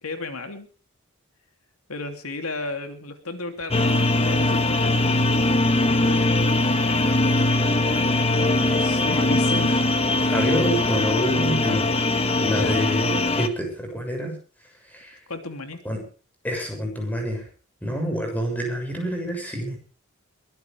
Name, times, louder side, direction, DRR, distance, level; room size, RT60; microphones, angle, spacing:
voice 1, 0.0-0.7 1.9-5.5 5.8-7.9 8.7-10.0 12.5-12.7 15.3-15.8, left 2 dB, 90° left, 6 dB, 3.0 m, -34 dB
sound 1, 3.7-13.5, left 2 dB, 25° left, 1.6 m, -21 dB
voice 2, 10.3-11.9 12.4-14.4 14.8-15.2 15.8-16.0 16.4-17.5 17.8-19.8, equal, 5° left, 3 dB, 6.8 m, -27 dB
22.5 x 17.0 x 3.5 m, 0.38 s
head